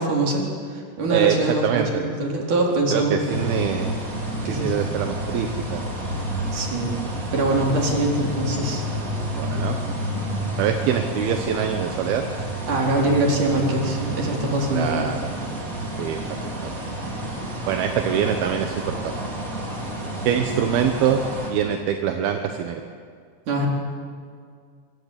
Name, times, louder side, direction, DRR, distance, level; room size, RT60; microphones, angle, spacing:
voice 1, 0.0-3.4 4.5-4.8 6.5-6.9 7.3-8.8 12.7-15.0 17.2-17.3 23.5-23.7, right 2 dB, 45° right, -1 dB, 5.5 m, -23 dB
voice 2, 1.1-2.0 2.9-3.9 4.5-5.8 9.4-9.8 10.6-12.2 14.7-15.3 16.0-16.2 17.7-19.1 20.2-21.2 21.5-22.8, right 8 dB, 70° right, 5 dB, 2.7 m, -24 dB
sound 1, 3.3-21.5, right 1 dB, 20° right, 3.8 m, -30 dB
25.0 x 25.0 x 8.9 m, 2.1 s
omnidirectional pair, 5.3 m